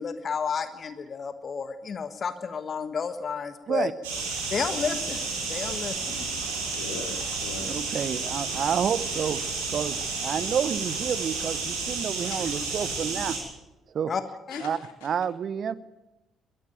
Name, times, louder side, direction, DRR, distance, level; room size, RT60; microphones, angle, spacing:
voice 1, 0.0-3.9 4.5-6.3 14.1-14.2 14.5-14.6, left 6 dB, 40° left, 10 dB, 1.5 m, -31 dB
sound 1, 4.0-13.4, right 4 dB, 70° right, 6.9 m, -31 dB
voice 2, 6.6-7.8 12.3-12.9 14.5-15.1, left 5 dB, 70° left, 3 dB, 3.7 m, -41 dB
voice 3, 7.7-9.4 9.7-13.4 13.9-14.1 14.6-15.7, right 8 dB, 50° right, 17 dB, 1.0 m, -29 dB
22.5 x 15.5 x 9.1 m, 0.99 s
figure-of-eight pair, 45°, 0 cm